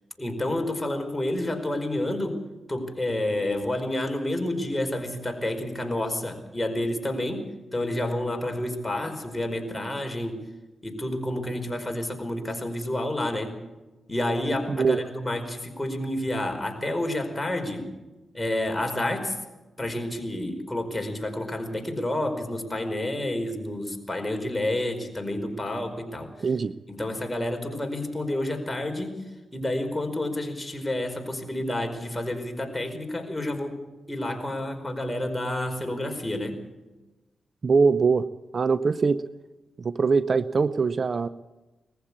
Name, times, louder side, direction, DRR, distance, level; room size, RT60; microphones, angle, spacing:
voice 1, 0.2-10.4 10.8-13.5 14.1-17.9 18.3-19.4 19.8-26.3 26.9-29.2 29.5-33.8 34.1-36.6, left 1 dB, 15° left, 4 dB, 4.9 m, -29 dB
voice 2, 14.7-15.0 26.4-26.7 37.6-38.2 38.5-39.2 39.8-41.3, right 4 dB, 55° right, 14 dB, 0.7 m, -22 dB
20.0 x 15.0 x 8.6 m, 1.1 s
supercardioid pair, 45°, 0 cm